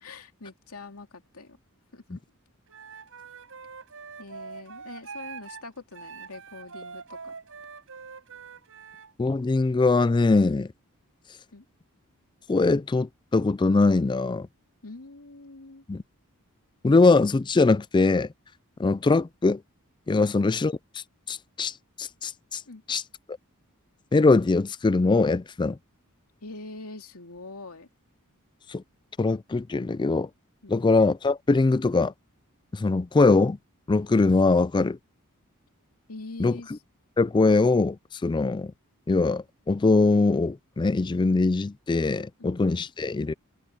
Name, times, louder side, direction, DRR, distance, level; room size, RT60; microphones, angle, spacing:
voice 1, 0.0-1.6 1.9-2.2 4.2-7.3 11.5-11.6 14.8-15.8 22.7-22.8 26.4-27.9 30.6-30.9 36.1-36.8 42.4-42.6, left 3 dB, 75° left, 2.8 m, -43 dB
Wind instrument woodwind instrument, 2.7-5.6 5.9-9.1, right 5 dB, 65° right, 6.9 m, -43 dB
voice 2, 9.2-10.7 12.5-14.5 15.9-16.0 16.8-18.3 18.8-19.6 20.1-20.8 21.3-21.7 22.0-22.6 22.9-23.0 24.1-25.8 28.7-28.8 29.2-30.3 30.7-32.1 32.7-33.6 33.9-35.0 36.4-36.6 37.2-38.0 38.2-38.7 39.1-43.3, left 3 dB, 20° left, 0.3 m, -22 dB
head